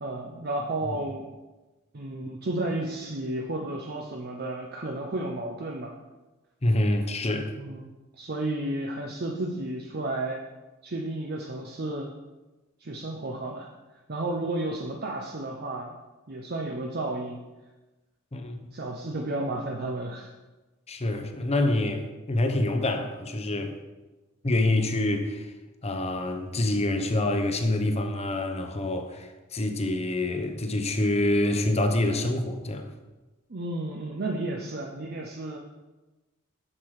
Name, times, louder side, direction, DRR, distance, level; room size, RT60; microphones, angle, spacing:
voice 1, 0.0-1.2 1.9-6.0 7.6-10.4 10.8-12.1 12.8-13.7 14.1-16.0 16.3-17.4 18.7-20.3 33.5-35.6, right 2 dB, 50° right, 0.7 m, -32 dB
voice 2, 6.6-7.5 18.3-18.7 20.9-23.7 24.4-25.5 25.8-32.9, left 1 dB, 30° left, 0.8 m, -26 dB
7.4 x 6.7 x 4.8 m
head